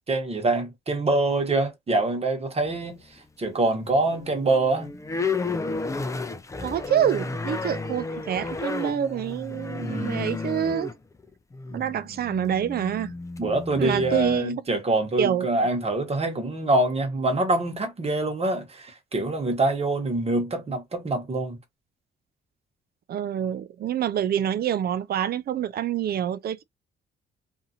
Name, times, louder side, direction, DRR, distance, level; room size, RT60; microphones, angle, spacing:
voice 1, 0.1-3.0 3.4-4.9 9.8-10.2 13.4-21.6, right 2 dB, 30° right, 1.2 m, -25 dB
sound 1, 2.7-3.4 3.8-14.4, left 3 dB, 15° left, 0.4 m, -33 dB
voice 2, 6.6-10.9 11.7-13.1 13.7-14.5 15.2-15.5 23.1-26.6, right 9 dB, 50° right, 0.4 m, -26 dB
2.6 x 2.5 x 2.7 m
cardioid pair, 90°, 20 cm